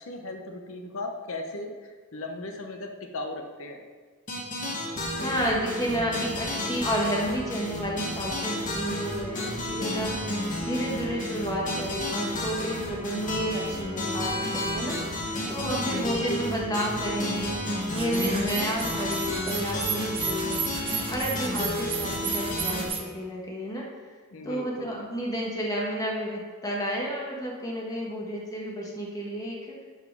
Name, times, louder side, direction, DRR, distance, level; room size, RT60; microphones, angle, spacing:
voice 1, 0.0-3.8 15.6-16.1 24.3-25.0, left 2 dB, 65° left, 4 dB, 1.0 m, -37 dB
sound 1, 4.3-22.9, left 1 dB, 35° left, 1.7 m, -31 dB
voice 2, 5.2-20.6 21.0-23.9 24.4-29.8, equal, 15° left, -3 dB, 1.3 m, -31 dB
sound 2, 17.9-23.0, right 6 dB, 25° right, 0.9 m, -33 dB
11.5 x 4.8 x 4.7 m, 1.5 s
head